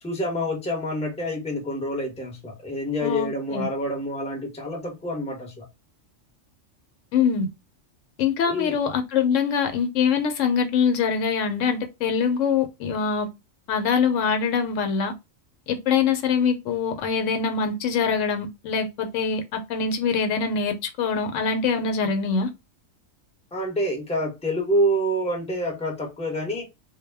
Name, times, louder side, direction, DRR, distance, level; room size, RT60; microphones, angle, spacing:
voice 1, 0.0-5.7 8.4-8.8 23.5-26.7, equal, 5° left, 0.6 m, -27 dB
voice 2, 3.0-3.7 7.1-7.5 8.2-13.3 13.7-15.1 15.7-22.5, left 6 dB, 75° left, 0.9 m, -24 dB
2.2 x 2.1 x 3.3 m
omnidirectional pair, 1.3 m